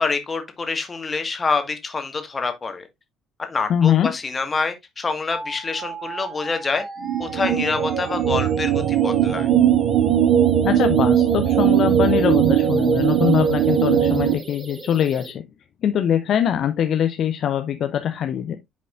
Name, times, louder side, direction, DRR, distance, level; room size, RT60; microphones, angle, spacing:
voice 1, 0.0-2.9 3.4-6.8 7.2-9.5, left 4 dB, 25° left, 1.6 m, -26 dB
voice 2, 3.7-4.1 10.6-15.4 15.8-18.6, left 9 dB, 50° left, 0.6 m, -22 dB
sound 1, 5.3-15.3, right 3 dB, 25° right, 1.5 m, -37 dB
sound 2, 7.0-14.3, right 9 dB, 55° right, 1.0 m, -19 dB
10.5 x 5.2 x 2.5 m
figure-of-eight pair, 55°, 0 cm